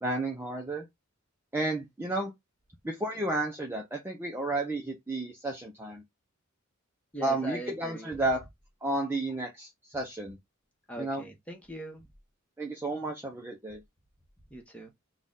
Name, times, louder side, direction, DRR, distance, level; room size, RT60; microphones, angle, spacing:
voice 1, 0.0-0.8 1.5-2.3 2.8-6.0 7.2-8.4 8.8-10.4 11.0-11.2 12.6-13.8, right 2 dB, 10° right, 0.7 m, -32 dB
voice 2, 7.1-8.1 10.9-12.0 14.5-14.9, equal, 5° left, 1.2 m, -41 dB
3.9 x 2.4 x 3.9 m
head